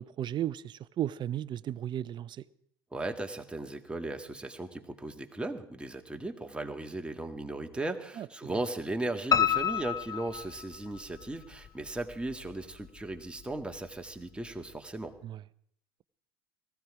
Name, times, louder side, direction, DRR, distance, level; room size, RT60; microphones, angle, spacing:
voice 1, 0.0-2.4 8.2-8.5 15.2-15.4, right 11 dB, 35° right, 0.6 m, -35 dB
voice 2, 2.9-15.1, right 2 dB, 10° right, 1.9 m, -37 dB
Piano, 9.3-11.2 11.7-12.5 12.8-12.9 13.4-13.5 13.7-13.8, left 8 dB, 25° left, 0.6 m, -29 dB
18.5 x 15.5 x 4.9 m
hypercardioid pair, 75°, 13 cm